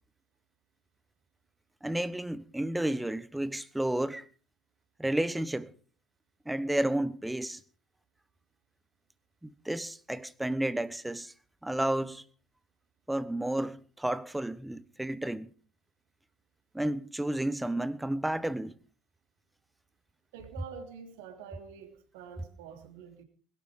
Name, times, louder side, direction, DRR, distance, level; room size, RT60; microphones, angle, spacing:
voice 1, 1.8-4.3 5.0-5.7 6.5-7.6 9.4-11.3 11.6-12.2 13.1-15.5 16.7-18.7, right 1 dB, 5° right, 1.1 m, -31 dB
voice 2, 20.3-23.2, right 6 dB, 70° right, 3.2 m, -47 dB
21.0 x 12.5 x 5.1 m
hypercardioid pair, 65°, 0 cm